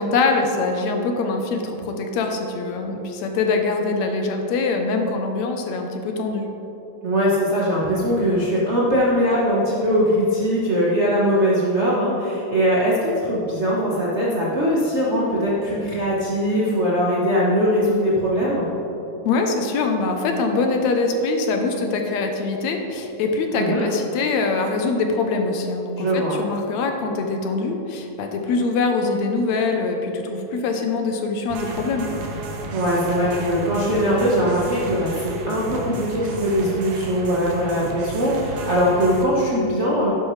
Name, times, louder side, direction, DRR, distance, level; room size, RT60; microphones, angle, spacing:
voice 1, 0.0-6.5 19.2-32.1, left 3 dB, 75° left, 4 dB, 2.0 m, -23 dB
voice 2, 7.0-18.7 23.5-23.9 26.0-26.4 32.7-40.1, equal, 90° right, -6 dB, 0.6 m, -21 dB
sound 1, 31.5-39.2, right 3 dB, 65° right, 1.5 m, -33 dB
11.0 x 10.5 x 3.2 m, 3.0 s
omnidirectional pair, 3.4 m